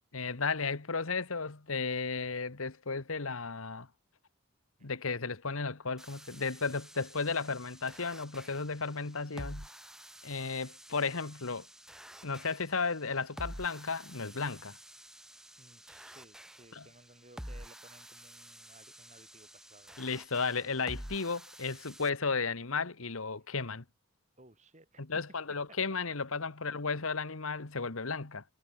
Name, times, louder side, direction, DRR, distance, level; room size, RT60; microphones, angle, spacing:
voice 1, 0.1-3.9 4.8-9.7 10.2-11.7 12.2-14.8 16.7-16.8 20.0-23.8 25.0-28.4, left 4 dB, 80° left, 1.5 m, -34 dB
sound 1, 6.0-22.1, equal, 5° right, 0.8 m, -50 dB
voice 2, 15.6-20.0 20.6-20.7 24.4-25.1 25.7-25.8, right 2 dB, 35° right, 5.3 m, -59 dB
head